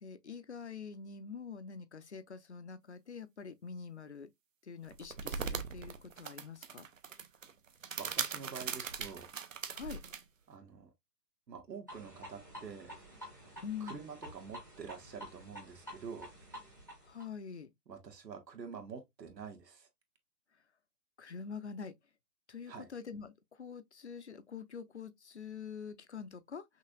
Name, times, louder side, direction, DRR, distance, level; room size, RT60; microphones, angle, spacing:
voice 1, 0.0-4.3 4.6-6.9 9.7-10.0 13.6-14.0 17.0-17.7 21.2-21.9 22.5-26.6, left 6 dB, 45° left, 0.5 m, -45 dB
sound 1, 4.8-10.2, right 6 dB, 55° right, 0.7 m, -40 dB
voice 2, 8.0-9.3 10.5-10.9 11.5-12.9 13.8-16.3 17.9-19.9 22.7-22.9, right 6 dB, 80° right, 1.6 m, -47 dB
sound 2, 11.9-17.2, equal, 10° right, 0.7 m, -50 dB
5.8 x 2.6 x 2.3 m
hypercardioid pair, 175°, 49 cm